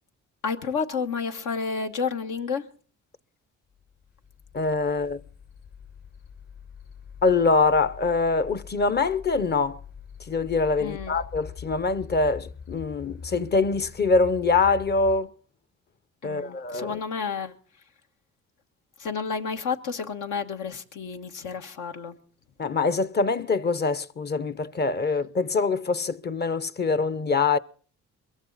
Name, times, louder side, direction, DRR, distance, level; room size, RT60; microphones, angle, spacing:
voice 1, 0.4-2.6 10.8-11.1 16.2-17.5 19.0-22.2, left 5 dB, 80° left, 1.6 m, -30 dB
sound 1, 3.9-15.2, left 5 dB, 50° left, 4.5 m, -44 dB
voice 2, 4.5-5.2 7.2-9.8 10.3-15.3 16.2-17.0 22.6-27.6, left 4 dB, 35° left, 0.7 m, -24 dB
22.0 x 15.5 x 4.0 m
cardioid pair, 90°, 30 cm